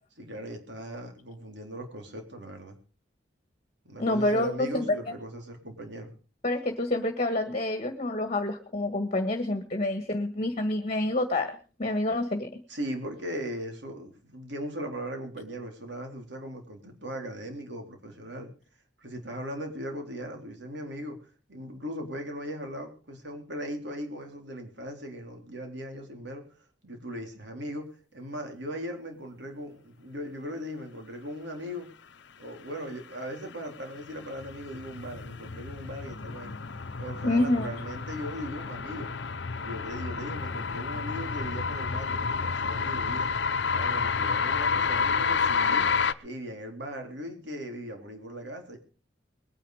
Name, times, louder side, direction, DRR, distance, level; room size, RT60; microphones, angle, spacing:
voice 1, 0.2-2.8 3.8-6.1 12.7-18.5 19.0-31.9 32.4-36.6 37.0-39.1 39.5-43.3 43.7-45.9 46.2-48.8, equal, 65° right, 4 dB, 3.9 m, -38 dB
voice 2, 4.0-4.7 6.4-11.5 11.8-12.5 37.2-37.7, left 1 dB, 35° left, 7 dB, 1.7 m, -27 dB
sound 1, 33.3-46.1, left 5 dB, 70° left, 0.9 m, -30 dB
21.5 x 10.0 x 5.0 m, 0.37 s
head